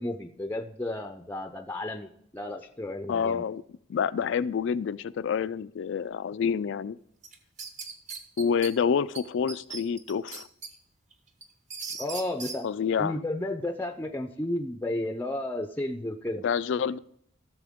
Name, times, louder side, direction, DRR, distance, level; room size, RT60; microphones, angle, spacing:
voice 1, 0.0-3.5 12.0-12.7 13.0-16.4, left 1 dB, 10° left, 6 dB, 0.5 m, -33 dB
voice 2, 3.1-3.6 3.9-7.0 8.4-10.5 12.6-13.1 16.4-17.0, left 6 dB, 65° left, 16 dB, 0.3 m, -28 dB
sound 1, 7.2-8.7 9.2-9.3 9.5-10.7 11.1-12.6, right 5 dB, 40° right, 1.0 m, -38 dB
15.5 x 6.7 x 3.6 m, 0.70 s
head